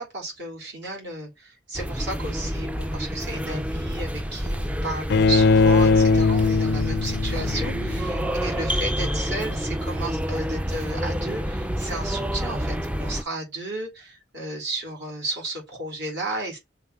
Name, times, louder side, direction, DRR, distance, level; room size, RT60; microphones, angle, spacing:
voice 1, 0.0-16.6, right 2 dB, 65° right, 4.1 m, -33 dB
sound 1, 1.7-13.2, equal, 5° right, 0.4 m, -28 dB
Bowed string instrument, 5.1-8.2, left 4 dB, 65° left, 0.4 m, -20 dB
5.7 x 3.8 x 4.7 m
head